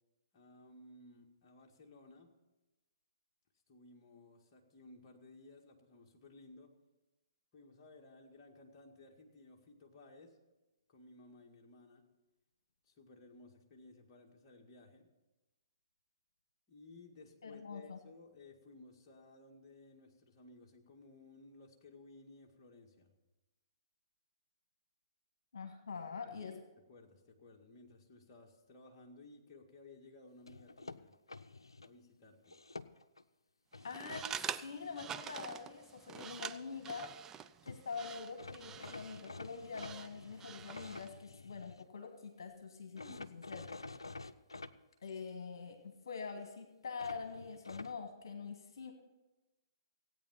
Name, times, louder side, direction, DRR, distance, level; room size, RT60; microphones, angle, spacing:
voice 1, 0.3-2.3 3.7-6.7 7.5-10.4 10.9-12.0 12.8-15.1 16.7-23.1 26.2-26.6 26.9-31.1 31.8-32.6 42.9-43.3, left 2 dB, 30° left, 0 dB, 1.9 m, -58 dB
voice 2, 17.4-18.0 25.5-26.6 33.8-43.6 45.0-48.9, left 5 dB, 60° left, 5 dB, 1.7 m, -45 dB
sound 1, 30.5-31.9 32.4-33.2 33.7-34.3 37.4-37.5 37.7-37.8 38.4-41.9 43.0-44.7 47.0-47.9, left 3 dB, 80° left, 0.6 m, -49 dB
sound 2, 33.8-41.2, right 9 dB, 15° right, 0.4 m, -47 dB
16.5 x 9.0 x 5.7 m, 1.1 s
figure-of-eight pair, 125°, 3 cm